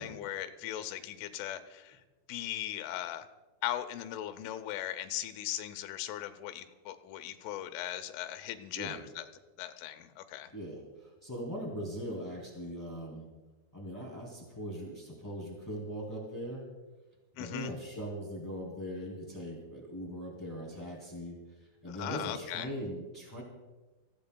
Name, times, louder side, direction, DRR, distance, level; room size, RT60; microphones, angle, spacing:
voice 1, 0.0-2.0 2.3-3.3 3.6-9.2 9.6-10.5 17.4-17.7 22.0-22.7, left 12 dB, 90° left, 9 dB, 3.3 m, -38 dB
voice 2, 10.5-13.3 13.7-16.7 17.4-23.4, equal, 10° left, -2 dB, 0.9 m, -40 dB
28.5 x 16.0 x 2.2 m, 1.2 s
omnidirectional pair, 5.5 m